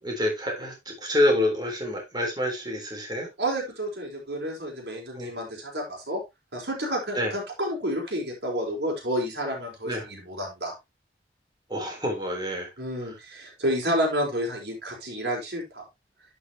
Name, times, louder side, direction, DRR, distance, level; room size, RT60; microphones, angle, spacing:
voice 1, 0.0-3.3 5.1-5.3 7.1-7.3 9.8-10.0 11.7-12.7, left 1 dB, 25° right, 2 dB, 3.6 m, -27 dB
voice 2, 3.4-6.2 6.5-10.8 12.8-15.8, equal, 80° right, -1 dB, 4.7 m, -30 dB
12.0 x 6.2 x 2.9 m, 0.21 s
head